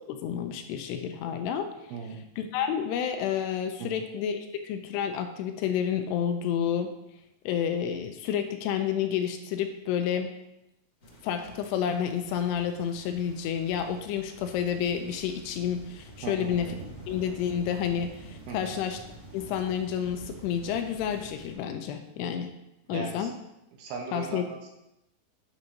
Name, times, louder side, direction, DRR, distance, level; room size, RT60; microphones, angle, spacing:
voice 1, 0.1-1.7 2.4-6.9 7.5-10.3 11.2-16.7 17.1-19.0 19.3-22.6 22.9-23.3 24.1-24.4, left 8 dB, 85° left, 7 dB, 2.6 m, -30 dB
voice 2, 1.9-2.3 3.8-4.0 16.2-16.6 18.5-18.8 22.9-23.3 23.8-24.7, right 4 dB, 75° right, 2 dB, 2.5 m, -38 dB
sound 1, 11.0-21.5, right 1 dB, 45° left, 1.0 m, -47 dB
9.5 x 4.0 x 5.3 m, 0.88 s
omnidirectional pair, 4.9 m